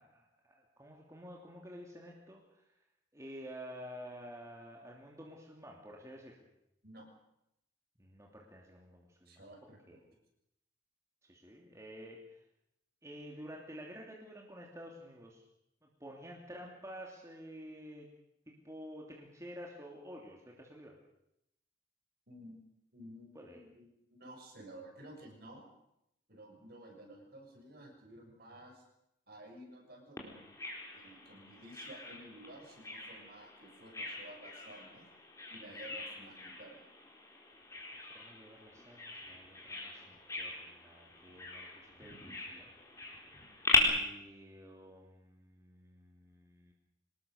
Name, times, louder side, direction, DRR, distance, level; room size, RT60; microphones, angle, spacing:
voice 1, 0.0-2.4 3.1-6.3 8.0-9.4 9.9-10.0 11.2-12.4 13.0-15.4 15.8-18.1 18.5-21.0 23.3-23.7 38.1-42.2 42.5-42.7 43.7-46.7, equal, 15° right, -1 dB, 3.0 m, -50 dB
voice 2, 9.2-10.1 22.3-22.6 22.9-25.7 26.3-28.8 29.3-35.1 35.5-36.9, right 1 dB, 55° right, 2 dB, 6.8 m, -53 dB
Bird vocalization bird call bird song, 30.2-43.8, left 3 dB, 15° left, 4.2 m, -39 dB
25.5 x 20.0 x 6.7 m, 0.81 s
head